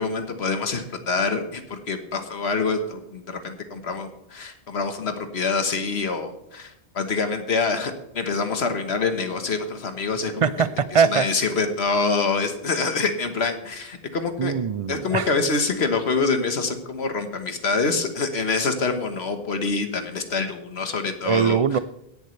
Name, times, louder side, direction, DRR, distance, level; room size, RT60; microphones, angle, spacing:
voice 1, 0.0-10.5 10.9-14.5 14.9-21.8, left 4 dB, 90° left, 1.6 m, -26 dB
voice 2, 10.4-11.3 14.4-15.3 21.3-21.8, right 7 dB, 50° right, 0.4 m, -21 dB
17.0 x 11.0 x 3.3 m
omnidirectional pair, 1.0 m